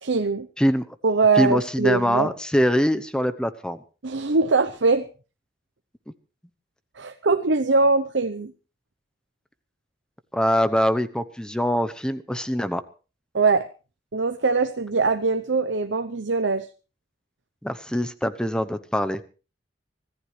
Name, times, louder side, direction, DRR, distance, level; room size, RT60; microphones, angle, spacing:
voice 1, 0.0-0.5 1.0-2.3 4.0-5.0 7.0-8.5 13.3-13.7 14.1-16.7, right 4 dB, 85° right, 8 dB, 0.8 m, -22 dB
voice 2, 0.6-0.9 1.4-3.8 10.3-12.8 17.6-19.2, equal, 5° left, 11 dB, 0.9 m, -23 dB
25.0 x 14.5 x 3.3 m, 0.35 s
head